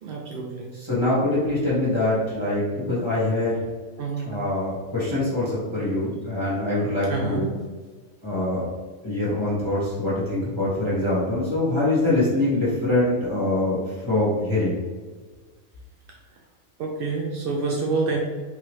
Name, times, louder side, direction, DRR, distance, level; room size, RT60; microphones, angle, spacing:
voice 1, 0.0-0.7 4.0-4.2 7.1-7.6 16.1-16.2 16.8-18.2, right 4 dB, 70° right, -1 dB, 0.5 m, -27 dB
voice 2, 0.7-3.6 4.2-7.5 8.2-8.7 9.0-14.8, left 2 dB, 20° left, -10 dB, 1.2 m, -24 dB
4.0 x 2.8 x 3.1 m, 1.4 s
omnidirectional pair, 1.5 m